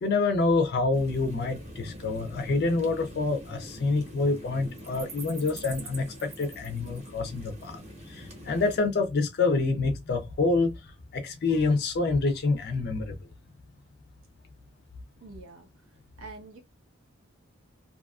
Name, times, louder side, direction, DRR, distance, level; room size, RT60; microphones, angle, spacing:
voice 1, 0.0-7.8 8.1-13.2, left 3 dB, 50° left, 0.4 m, -27 dB
sound 1, 0.9-8.8, right 1 dB, 30° right, 0.7 m, -44 dB
voice 2, 15.2-15.7 16.2-16.6, right 3 dB, 85° right, 1.0 m, -45 dB
2.6 x 2.3 x 2.3 m
head